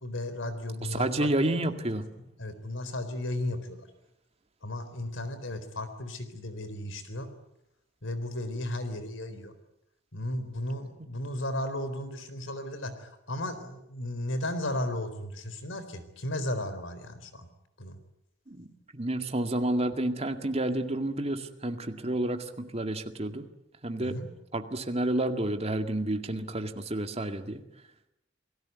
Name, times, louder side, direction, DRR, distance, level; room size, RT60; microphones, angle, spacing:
voice 1, 0.0-1.3 2.4-3.9 4.6-7.3 8.0-9.5 10.1-17.5 17.8-18.0 24.0-24.3, left 1 dB, 75° left, 11 dB, 4.0 m, -35 dB
voice 2, 0.9-2.0 18.5-18.7 18.9-23.5 23.8-24.2 24.5-27.6, right 1 dB, 30° right, 7 dB, 2.0 m, -30 dB
28.5 x 18.5 x 9.5 m, 0.85 s
head